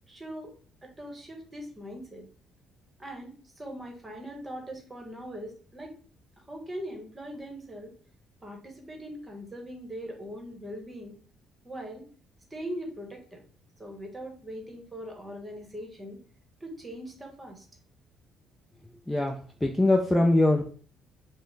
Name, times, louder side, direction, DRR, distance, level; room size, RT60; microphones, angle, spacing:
voice 1, 0.1-0.5 0.8-2.3 3.0-5.9 6.5-7.9 8.4-11.1 11.6-12.1 12.5-13.4 13.8-16.2 16.6-17.7, equal, 15° right, 2 dB, 1.0 m, -41 dB
voice 2, 19.1-20.7, left 2 dB, 10° left, 2 dB, 0.4 m, -23 dB
5.3 x 2.0 x 3.3 m, 0.43 s
cardioid pair, 135°, 0 cm